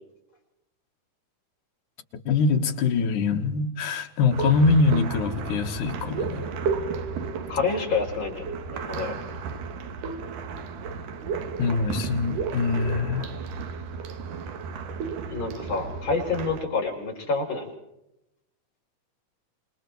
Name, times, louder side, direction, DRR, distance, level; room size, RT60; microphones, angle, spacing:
voice 1, 2.3-6.5 11.6-13.3, left 4 dB, 70° left, 3.0 m, -23 dB
sound 1, 4.3-16.6, right 5 dB, 85° right, 3.1 m, -33 dB
voice 2, 7.5-8.4 8.7-9.2 15.3-17.7, left 4 dB, 35° left, 5.2 m, -27 dB
28.0 x 21.0 x 4.7 m
omnidirectional pair, 3.7 m